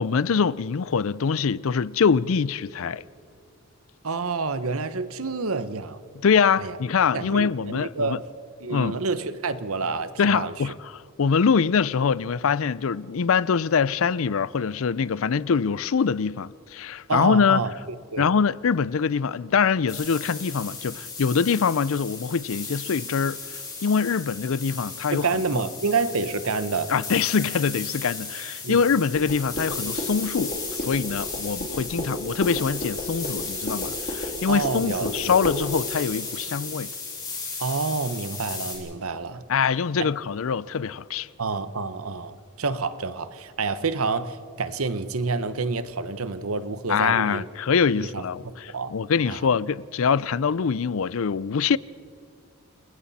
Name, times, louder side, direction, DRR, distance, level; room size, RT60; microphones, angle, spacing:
voice 1, 0.0-3.0 6.2-8.2 8.7-9.0 10.2-17.6 18.2-25.3 25.5-25.6 26.9-36.9 39.5-41.3 46.9-51.8, left 6 dB, 75° left, 0.5 m, -24 dB
voice 2, 4.0-6.0 6.6-6.8 7.1-8.3 8.6-10.7 17.1-17.7 18.1-18.3 25.1-26.9 28.6-28.9 34.5-35.3 37.6-39.4 40.0-40.1 41.4-47.5 48.0-48.2 48.7-48.9 49.3-49.5, right 4 dB, 85° right, 1.0 m, -28 dB
sound 1, 19.9-38.8, left 4 dB, 20° left, 6.1 m, -35 dB
sound 2, 29.1-35.6, equal, 40° left, 2.8 m, -33 dB
29.0 x 21.0 x 4.2 m
head